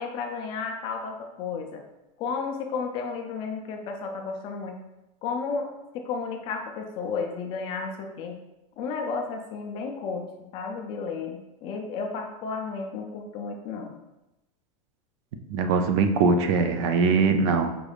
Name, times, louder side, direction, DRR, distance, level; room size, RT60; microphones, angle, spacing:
voice 1, 0.0-1.8 2.2-4.8 5.2-5.7 6.0-8.4 8.8-10.3 10.5-13.9, left 5 dB, 30° left, 3 dB, 0.3 m, -32 dB
voice 2, 15.5-17.7, right 4 dB, 50° right, 7 dB, 0.4 m, -22 dB
5.1 x 3.3 x 2.3 m, 0.97 s
supercardioid pair, 165°, 19 cm